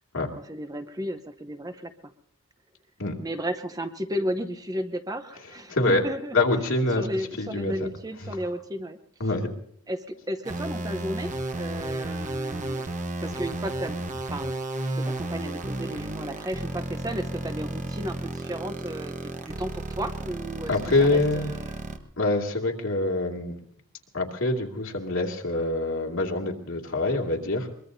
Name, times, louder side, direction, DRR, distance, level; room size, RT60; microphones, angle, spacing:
voice 1, 0.5-2.1 3.2-6.4 7.0-9.0 9.9-11.3 11.6-12.9 13.2-14.5 14.9-20.7 21.0-21.8, equal, 15° right, 9 dB, 0.8 m, -34 dB
voice 2, 5.7-6.0 6.3-7.1 7.4-7.9 8.2-8.3 9.2-9.5 20.7-21.5 22.2-23.6 24.1-27.7, left 2 dB, 75° left, 1 dB, 2.4 m, -25 dB
sound 1, 10.4-22.0, right 2 dB, 35° right, 1.1 m, -33 dB
23.0 x 22.0 x 2.7 m, 0.65 s
head